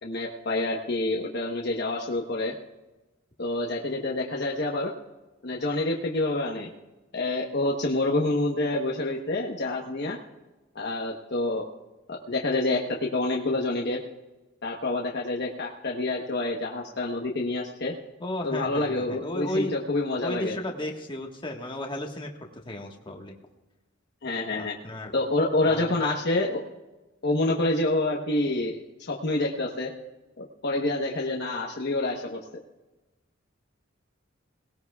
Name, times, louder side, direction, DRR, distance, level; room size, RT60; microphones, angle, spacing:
voice 1, 0.0-2.5 3.4-4.9 5.4-6.7 7.1-10.2 10.7-11.7 12.1-14.0 14.6-17.9 18.4-20.6 24.2-24.8 25.1-26.6 27.2-29.9 30.4-32.4, left 2 dB, 55° left, 0 dB, 1.1 m, -27 dB
voice 2, 18.2-19.7 20.2-23.3 24.6-25.1 25.6-26.1, left 1 dB, 25° left, 2 dB, 1.4 m, -34 dB
19.0 x 18.0 x 2.3 m, 1.1 s
head